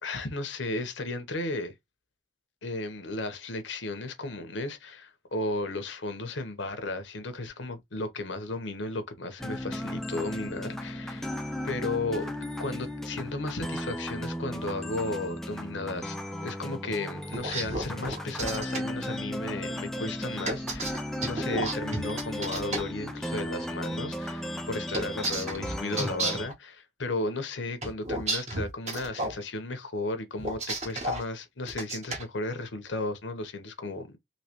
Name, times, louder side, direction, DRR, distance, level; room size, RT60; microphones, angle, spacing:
voice 1, 0.0-1.7 2.6-11.3 11.6-16.2 16.4-34.2, left 2 dB, 75° left, 0.9 m, -34 dB
sound 1, 9.4-26.5, equal, ahead, 0.4 m, -35 dB
sound 2, 17.3-18.8 20.4-22.8 24.9-26.5 27.8-29.4 30.4-31.2 31.7-32.2, right 2 dB, 35° right, 1.0 m, -32 dB
3.1 x 2.9 x 2.9 m
head